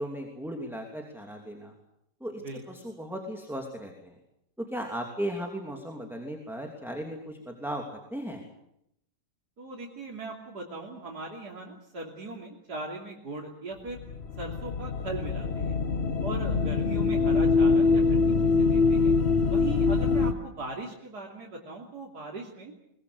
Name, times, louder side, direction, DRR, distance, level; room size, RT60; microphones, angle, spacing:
voice 1, 0.0-1.7 2.2-2.4 2.7-4.1 4.7-7.8 8.1-8.4, equal, ahead, 2 dB, 2.9 m, -36 dB
voice 2, 9.6-14.0 14.4-15.8 16.2-19.1 19.5-22.7, right 2 dB, 75° right, -2 dB, 3.6 m, -39 dB
sound 1, 13.9-20.3, left 4 dB, 45° left, 1.3 m, -24 dB
23.0 x 21.5 x 8.2 m, 0.79 s
omnidirectional pair, 1.7 m